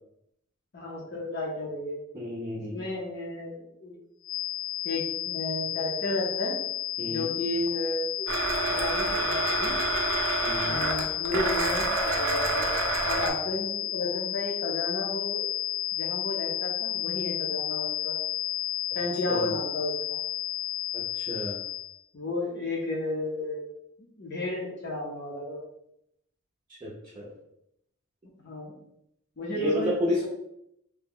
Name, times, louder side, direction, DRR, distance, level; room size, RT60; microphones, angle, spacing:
voice 1, 0.7-2.0 2.7-4.0 4.8-6.6 7.1-8.3 8.7-9.8 10.6-12.7 13.0-15.4 15.9-18.1 18.9-20.2 22.1-23.6 24.0-25.6 28.4-28.8 29.4-29.9, left 2 dB, 55° left, -3 dB, 0.6 m, -33 dB
voice 2, 2.1-2.8 7.0-7.3 10.4-10.7 19.3-19.5 20.9-21.6 26.8-27.3 29.5-30.3, left 1 dB, 25° right, -5 dB, 0.5 m, -31 dB
sound 1, 4.2-22.0, left 11 dB, 85° left, 1.1 m, -32 dB
Domestic sounds home sounds, 8.3-13.3, right 3 dB, 70° right, 0.5 m, -28 dB
2.8 x 2.1 x 3.6 m, 0.77 s
head